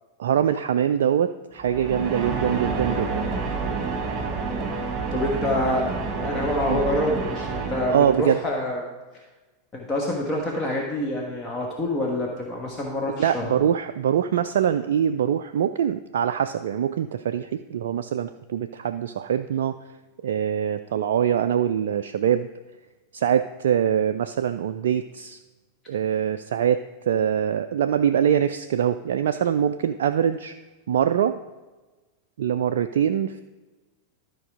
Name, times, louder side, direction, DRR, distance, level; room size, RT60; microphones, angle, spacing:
voice 1, 0.2-3.2 6.7-6.8 7.9-8.4 13.2-19.8 20.2-22.5 23.1-25.4 25.9-30.5 30.9-31.4 32.4-33.4, right 9 dB, 60° right, 8 dB, 0.3 m, -23 dB
sound 1, 1.6-8.5, right 4 dB, 30° right, 1.4 m, -29 dB
voice 2, 5.1-6.0 6.2-8.8 9.1-9.2 9.7-13.7, left 1 dB, 20° left, -1 dB, 1.3 m, -27 dB
12.5 x 4.6 x 5.0 m, 1.2 s
figure-of-eight pair, 90°, 0 cm